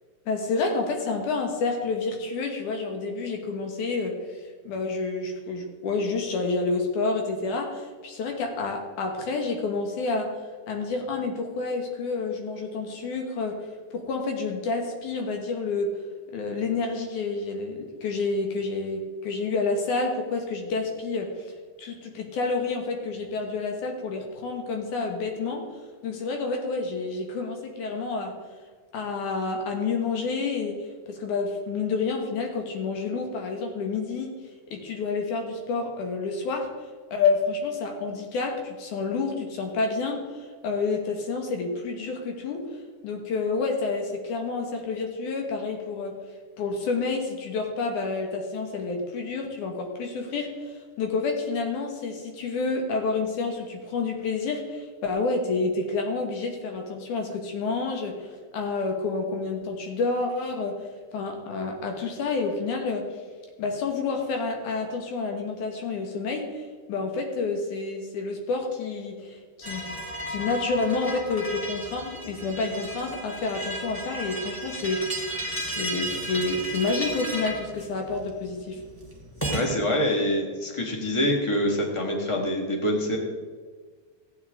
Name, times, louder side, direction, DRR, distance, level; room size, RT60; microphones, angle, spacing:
voice 1, 0.3-4.2 4.6-10.3 10.7-13.7 13.9-15.9 16.3-21.4 21.8-25.7 26.0-28.3 28.9-34.3 34.7-36.7 37.1-42.6 43.0-46.2 46.6-50.7 51.0-63.1 63.6-70.0 70.3-75.3 75.6-78.8, left 4 dB, 80° left, 3 dB, 3.0 m, -29 dB
sound 1, 69.6-79.6, right 1 dB, 5° left, 1.9 m, -34 dB
voice 2, 79.5-83.2, equal, 25° left, 0 dB, 0.7 m, -25 dB
15.0 x 8.9 x 3.6 m, 1.5 s
omnidirectional pair, 3.5 m